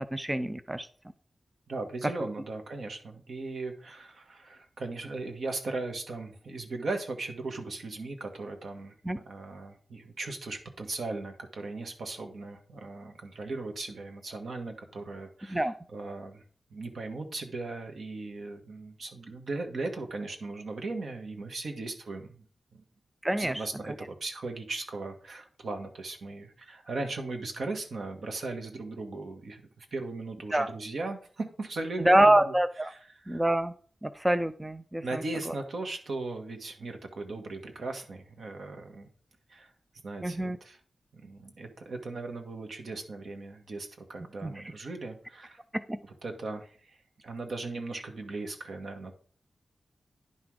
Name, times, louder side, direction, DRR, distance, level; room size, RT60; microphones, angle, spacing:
voice 1, 0.1-0.9 9.0-9.2 15.5-15.7 23.2-23.6 30.5-30.7 32.0-32.9 33.3-33.7 34.0-35.2 40.2-40.6 44.4-44.6 45.7-46.0, right 1 dB, 10° right, 11 dB, 0.4 m, -26 dB
voice 2, 1.7-16.4 16.7-22.4 22.7-22.8 23.4-32.5 32.9-33.0 33.3-33.4 35.0-39.1 39.5-39.7 40.0-40.8 41.1-45.6 46.2-47.0 47.2-49.1, right 3 dB, 75° right, 5 dB, 1.7 m, -38 dB
10.5 x 6.0 x 4.8 m, 0.43 s
wide cardioid pair, 150°, 0 cm